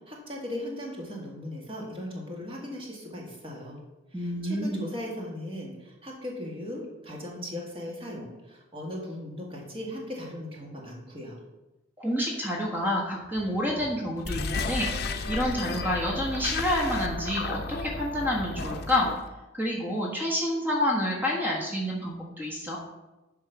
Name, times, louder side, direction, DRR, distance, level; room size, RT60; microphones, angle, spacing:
voice 1, 0.1-3.8 4.1-11.4, left 1 dB, 30° right, -1 dB, 2.0 m, -38 dB
voice 2, 4.1-4.8 12.0-19.1 19.5-22.8, left 1 dB, 10° right, -2 dB, 1.3 m, -28 dB
sound 1, 14.2-19.2, left 3 dB, 55° left, 0.7 m, -33 dB
10.5 x 3.7 x 5.9 m, 1.0 s
head